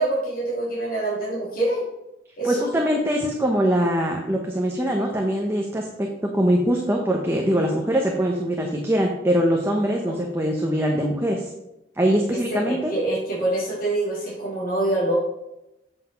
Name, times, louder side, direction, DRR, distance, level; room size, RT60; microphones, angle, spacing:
voice 1, 0.0-1.8 2.4-2.7 10.0-10.1 12.3-15.1, right 2 dB, 50° left, -6 dB, 2.7 m, -25 dB
voice 2, 2.4-6.1 6.3-11.5 12.0-12.9, equal, 15° right, 0 dB, 0.9 m, -22 dB
8.1 x 5.8 x 5.6 m, 0.90 s
head